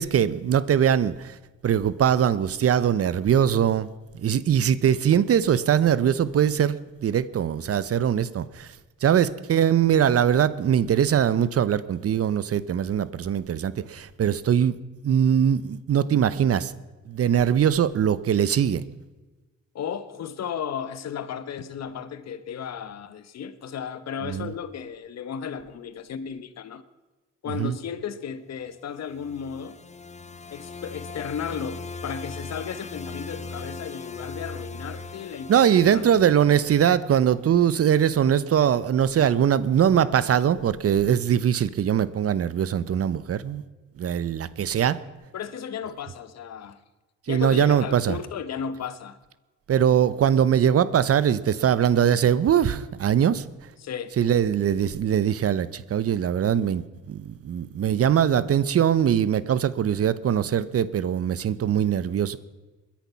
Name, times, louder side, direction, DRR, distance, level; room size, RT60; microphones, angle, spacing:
voice 1, 0.0-1.4 1.6-3.9 4.1-8.7 9.0-14.8 15.0-16.7 17.1-18.8 24.2-24.5 27.6-27.8 35.5-43.6 44.0-45.0 47.3-48.2 49.7-53.4 54.2-62.4, right 9 dB, 50° right, 0.8 m, -22 dB
voice 2, 19.7-26.8 27.4-29.8 30.5-36.1 45.3-46.8 47.3-49.2 53.8-54.1, left 7 dB, 60° left, 1.2 m, -34 dB
sound 1, 28.9-37.1, left 3 dB, 25° left, 0.9 m, -39 dB
21.0 x 10.5 x 5.7 m
cardioid pair, 90°, 30 cm